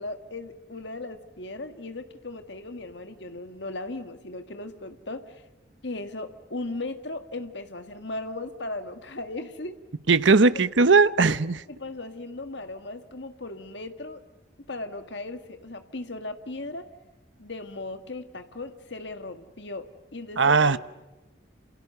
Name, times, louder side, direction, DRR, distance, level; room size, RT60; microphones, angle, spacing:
voice 1, 0.0-5.4 5.8-9.8 11.7-14.2 14.7-16.9 17.4-20.8, left 2 dB, 65° left, 1.7 m, -37 dB
voice 2, 10.1-11.6 20.4-20.8, right 4 dB, 75° right, 0.9 m, -19 dB
28.5 x 28.5 x 6.7 m
head